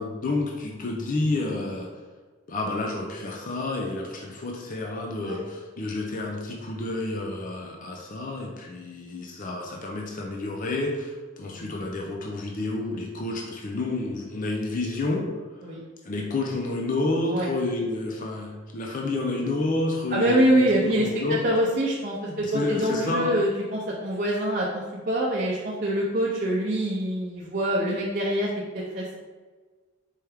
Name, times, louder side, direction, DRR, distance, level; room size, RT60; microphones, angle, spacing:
voice 1, 0.0-1.9 2.5-15.3 16.0-21.4 22.3-23.4, left 2 dB, 40° left, 0 dB, 0.5 m, -29 dB
voice 2, 20.1-28.5 28.7-29.2, right 1 dB, 45° right, -5 dB, 0.6 m, -25 dB
4.6 x 3.4 x 3.4 m, 1.4 s
head